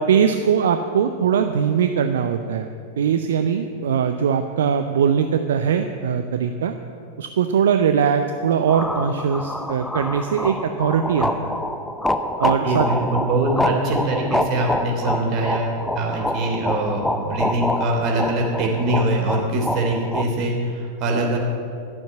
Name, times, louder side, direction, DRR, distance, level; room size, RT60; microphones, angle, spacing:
voice 1, 0.0-2.7 3.0-6.7 7.2-11.5 12.4-12.9, right 7 dB, 60° right, 7 dB, 0.5 m, -21 dB
sound 1, 8.7-20.3, left 1 dB, 5° left, 0.7 m, -26 dB
voice 2, 12.6-21.4, right 2 dB, 40° right, 0 dB, 3.0 m, -23 dB
12.0 x 7.3 x 8.6 m, 2.4 s
figure-of-eight pair, 90°, 0 cm